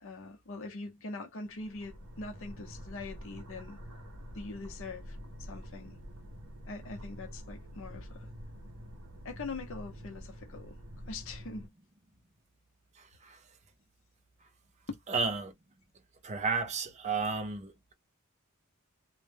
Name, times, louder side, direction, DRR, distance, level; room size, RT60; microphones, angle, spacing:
voice 1, 0.0-3.8 4.3-5.9 6.7-8.3 9.2-10.8 11.1-11.7 14.9-15.0, left 3 dB, 60° left, 0.6 m, -43 dB
sound 1, 1.5-11.7, equal, 90° right, 0.8 m, -47 dB
voice 2, 13.0-13.4 15.1-15.5 16.2-17.9, right 4 dB, 30° right, 0.5 m, -33 dB
2.1 x 2.1 x 3.2 m
head